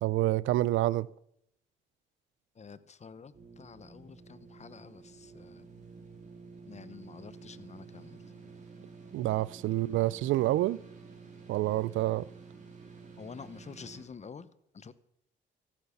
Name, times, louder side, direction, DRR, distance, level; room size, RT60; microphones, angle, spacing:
voice 1, 0.0-1.1 9.1-10.8 11.5-12.3, right 15 dB, 80° right, 0.5 m, -28 dB
voice 2, 2.5-5.7 6.7-8.2 13.2-14.9, left 5 dB, 35° left, 1.0 m, -49 dB
sound 1, 3.3-14.0, right 4 dB, 35° right, 4.0 m, -51 dB
14.5 x 8.8 x 7.1 m
cardioid pair, 90°, 20 cm